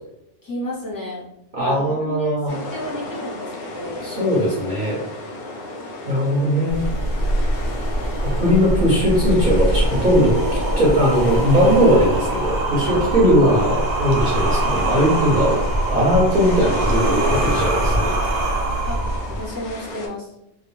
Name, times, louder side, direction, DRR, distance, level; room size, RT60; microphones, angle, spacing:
voice 1, 0.4-1.3 1.6-4.1 12.9-13.1 18.8-19.0 19.3-20.4, left 1 dB, 25° left, -7 dB, 0.6 m, -32 dB
voice 2, 1.5-2.5 4.0-5.0 6.1-6.8 8.4-10.3 10.8-15.6 15.9-18.1, equal, 50° right, -6 dB, 0.7 m, -19 dB
sound 1, 2.5-20.1, left 2 dB, 65° left, 0.7 m, -33 dB
sound 2, 6.7-19.7, right 1 dB, 80° right, 0.9 m, -23 dB
2.3 x 2.2 x 3.0 m, 0.82 s
omnidirectional pair, 1.2 m